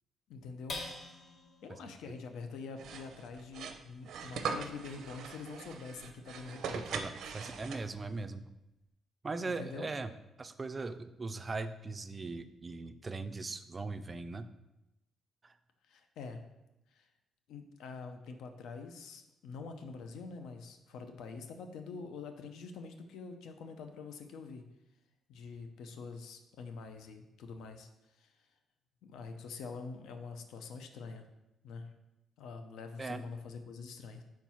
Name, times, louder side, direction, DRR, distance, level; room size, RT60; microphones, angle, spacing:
voice 1, 0.3-0.8 1.6-6.9 9.4-9.9 15.9-16.4 16.9-17.0 17.5-24.6 25.3-27.9 28.2-28.3 29.0-31.3 31.6-31.9 32.4-34.2, left 4 dB, 85° left, 6 dB, 0.6 m, -45 dB
sound 1, 0.7-7.4 7.9-8.0 8.4-8.9, left 2 dB, 50° left, 1.2 m, -50 dB
sound 2, 2.8-8.1, right 6 dB, 70° right, 0.6 m, -41 dB
voice 2, 6.7-8.4 9.2-10.1 10.4-14.5 15.4-15.5 33.0-33.2, right 3 dB, 20° right, 10 dB, 0.3 m, -39 dB
4.7 x 4.5 x 5.6 m, 0.93 s
cardioid pair, 155°, 0 cm